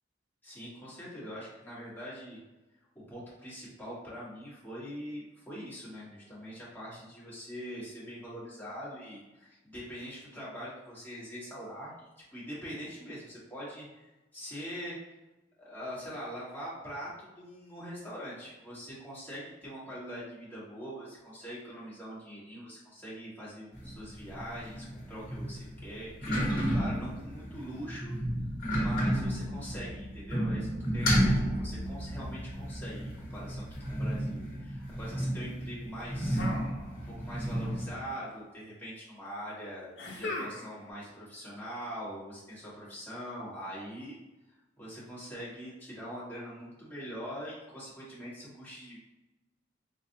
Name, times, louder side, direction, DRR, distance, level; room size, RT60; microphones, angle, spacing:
voice 1, 0.4-2.4 3.1-11.9 12.3-15.1 15.6-26.4 26.7-28.1 28.8-30.7 30.9-36.4 37.0-39.9 40.1-44.2 44.8-49.0, equal, 10° left, -9 dB, 1.3 m, -43 dB
sound 1, 23.7-37.9, equal, 50° left, 1.2 m, -32 dB
sound 2, 36.3-37.3 37.6-38.3 40.0-40.9, left 2 dB, 65° left, 0.6 m, -39 dB
4.0 x 2.5 x 2.6 m, 1.1 s
head